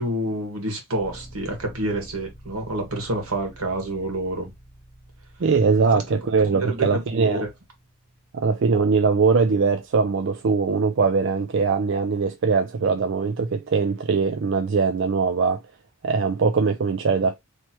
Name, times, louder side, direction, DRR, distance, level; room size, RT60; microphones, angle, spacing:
voice 1, 0.0-4.5 5.9-6.0 6.5-7.5, right 1 dB, 85° right, 1.7 m, -28 dB
sound 1, 1.0-10.7, right 1 dB, 5° right, 1.3 m, -49 dB
voice 2, 5.4-7.4 8.3-15.6 16.0-17.3, right 5 dB, 55° right, 0.4 m, -21 dB
3.2 x 3.0 x 4.4 m
head